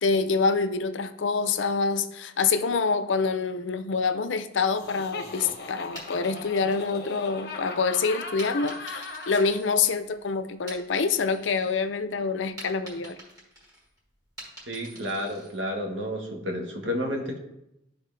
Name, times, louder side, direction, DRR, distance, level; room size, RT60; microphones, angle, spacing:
voice 1, 0.0-13.2, left 4 dB, 75° left, 11 dB, 0.5 m, -26 dB
Laughter, 4.7-9.6, left 3 dB, 55° left, 0.9 m, -38 dB
sound 1, 5.9-7.7 8.4-10.2 10.5-11.8 12.1-15.6, right 1 dB, 20° right, 2.4 m, -46 dB
voice 2, 14.7-17.4, equal, 75° right, 2 dB, 1.4 m, -31 dB
12.0 x 4.0 x 3.3 m, 0.84 s
head